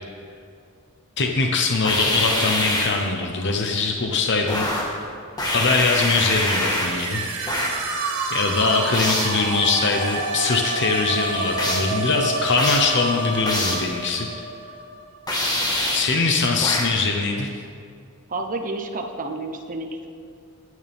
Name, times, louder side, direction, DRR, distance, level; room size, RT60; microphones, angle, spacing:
voice 1, 1.2-4.7 5.5-7.2 8.3-14.3 15.9-17.5, left 4 dB, 55° left, 2 dB, 0.9 m, -22 dB
sound 1, 1.8-3.1 4.5-5.0 5.4-7.1 7.5-7.9 8.9-9.4 11.6-12.0 12.6-13.0 13.5-13.9 15.3-16.2 16.6-17.0, left 1 dB, 20° left, 1.7 m, -25 dB
sound 2, 5.8-15.4, right 2 dB, 75° right, 2.2 m, -29 dB
voice 2, 18.3-20.1, right 2 dB, 40° right, 4 dB, 1.0 m, -30 dB
19.5 x 9.4 x 3.6 m, 2.4 s
head